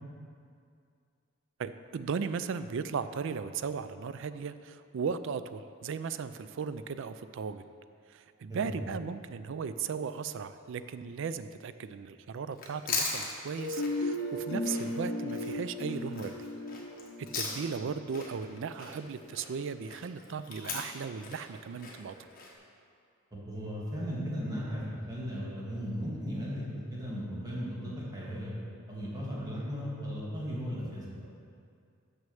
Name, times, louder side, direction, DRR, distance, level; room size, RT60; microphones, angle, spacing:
voice 1, 1.6-7.6 8.1-16.4 17.2-22.1, right 6 dB, 65° right, 12 dB, 0.4 m, -37 dB
voice 2, 8.5-8.8 23.3-28.5 28.9-31.3, equal, 20° right, -6 dB, 1.9 m, -36 dB
Chewing mastication, 12.5-17.9 18.1-22.5, left 4 dB, 45° left, 1.4 m, -39 dB
sound 1, 13.6-19.4, left 1 dB, 70° left, 0.9 m, -36 dB
6.4 x 6.1 x 7.0 m, 2.3 s
head